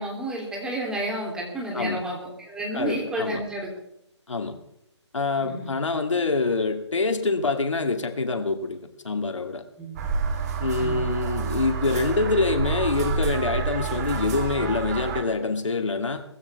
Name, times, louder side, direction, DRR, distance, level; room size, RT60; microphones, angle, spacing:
voice 1, 0.0-3.7 5.4-5.8 9.8-10.0 10.8-11.1, right 1 dB, 5° right, -2 dB, 3.1 m, -31 dB
voice 2, 2.7-3.4 4.3-4.6 5.1-8.8 9.0-9.6 10.6-16.2, left 3 dB, 85° left, 6 dB, 2.4 m, -25 dB
sound 1, 10.0-15.2, right 5 dB, 35° right, 2.4 m, -28 dB
19.0 x 15.5 x 3.5 m, 0.78 s
hypercardioid pair, 155°, 15 cm